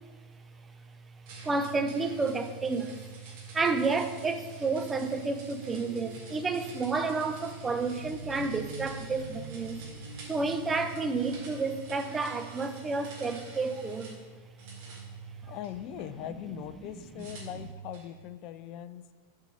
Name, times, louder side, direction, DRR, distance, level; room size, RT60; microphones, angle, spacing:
sound 1, 1.3-14.2 14.6-16.1 17.2-18.1, right 5 dB, 45° right, 1.5 m, -46 dB
voice 1, 1.4-3.1 3.5-9.8 10.3-14.2 17.2-17.3, right 3 dB, 15° right, 0.5 m, -30 dB
sound 2, 5.6-11.9, right 1 dB, 85° right, 0.5 m, -45 dB
voice 2, 15.5-19.1, left 11 dB, 40° left, 0.3 m, -40 dB
6.7 x 4.6 x 5.4 m
figure-of-eight pair, 90°, 0 cm